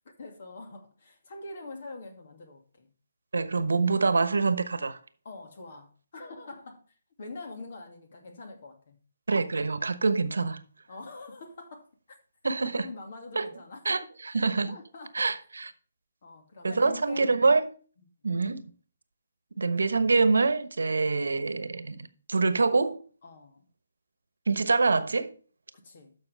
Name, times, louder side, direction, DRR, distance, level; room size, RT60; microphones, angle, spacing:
voice 1, 0.2-2.9 5.2-6.8 7.2-9.0 10.9-12.2 12.6-14.0 14.7-15.3 16.2-17.3 18.0-18.1 23.2-23.6 25.7-26.2, left 3 dB, 55° left, 2.3 m, -44 dB
voice 2, 3.3-5.0 9.3-10.6 12.4-12.8 13.4-13.5 13.8-14.7 15.1-15.7 16.6-17.7 18.2-18.7 19.6-23.0 24.5-25.3, right 4 dB, 75° right, 1.1 m, -25 dB
12.0 x 6.3 x 3.5 m
figure-of-eight pair, 145°, 0 cm